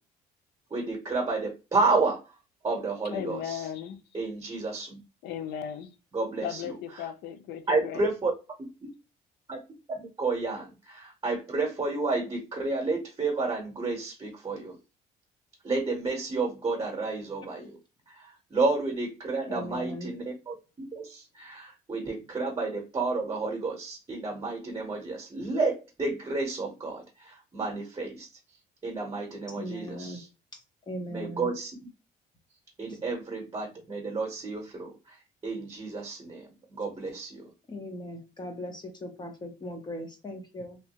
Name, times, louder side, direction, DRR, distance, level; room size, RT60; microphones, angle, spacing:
voice 1, 0.7-2.3 2.6-3.6 4.1-5.0 6.1-7.1 7.7-8.3 8.6-8.7 9.5-9.6 10.0-14.8 15.6-17.8 18.1-20.5 20.9-28.3 28.8-30.3 31.1-31.7 32.8-37.5, right 3 dB, 25° right, 1.0 m, -31 dB
voice 2, 3.1-4.0 5.2-5.9 6.4-8.1, left 9 dB, 80° left, 0.5 m, -36 dB
voice 3, 19.5-20.1 29.6-30.2 30.9-31.5 32.9-33.0 37.7-40.8, equal, 25° left, 0.8 m, -39 dB
3.1 x 2.2 x 2.9 m
cardioid pair, 110°, 17 cm